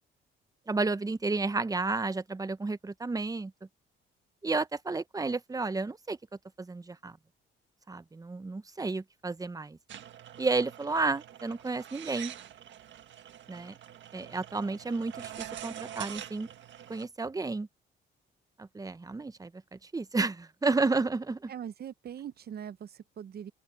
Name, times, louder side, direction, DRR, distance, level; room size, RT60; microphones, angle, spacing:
voice 1, 0.7-3.5 4.4-6.2 6.6-7.2 7.9-9.8 10.4-12.3 13.5-13.7 14.1-16.5 16.9-17.7 18.6-21.5, right 3 dB, 20° right, 0.9 m, -32 dB
sound 1, 9.9-17.1, right 10 dB, 70° right, 1.7 m, -45 dB
voice 2, 21.5-23.5, right 9 dB, 50° right, 0.9 m, -41 dB
open air
cardioid pair, 90°, 20 cm